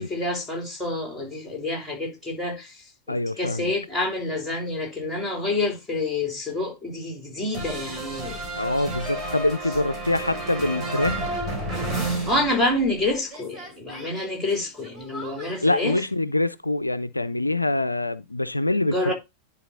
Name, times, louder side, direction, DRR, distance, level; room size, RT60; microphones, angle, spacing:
voice 1, 0.0-8.4 11.9-16.0 18.9-19.1, left 2 dB, ahead, 3.4 m, -28 dB
voice 2, 3.1-3.7 8.5-11.3 15.6-19.1, left 2 dB, 85° left, 0.3 m, -25 dB
sound 1, 7.5-13.0 13.3-15.6, right 2 dB, 15° right, 3.3 m, -32 dB
11.0 x 4.2 x 3.9 m
figure-of-eight pair, 90°, 0 cm